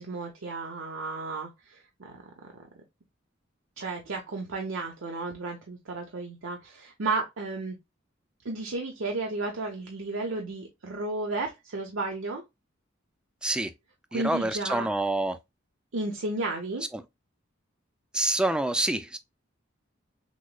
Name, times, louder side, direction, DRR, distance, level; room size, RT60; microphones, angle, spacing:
voice 1, 0.0-2.7 3.8-7.7 8.4-12.4 14.1-14.9 15.9-16.8, right 3 dB, 85° right, 0.8 m, -33 dB
voice 2, 13.4-13.7 14.1-15.4 16.9-17.0 18.1-19.2, right 1 dB, 5° right, 0.4 m, -27 dB
6.2 x 2.1 x 2.2 m
head